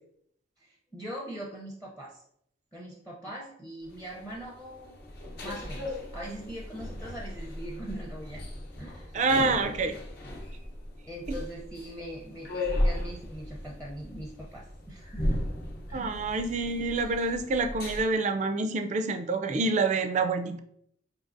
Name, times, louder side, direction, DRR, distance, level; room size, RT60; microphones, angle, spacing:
voice 1, 0.6-2.2 2.7-4.9 5.3-8.4 8.8-9.2 11.1-15.4 15.9-16.1, right 1 dB, 5° left, -3 dB, 0.6 m, -41 dB
sound 1, 3.8-18.0, left 1 dB, 55° left, 0.8 m, -36 dB
voice 2, 9.1-10.0 15.9-20.6, right 3 dB, 40° right, 7 dB, 0.3 m, -27 dB
5.1 x 2.8 x 2.5 m, 0.70 s
head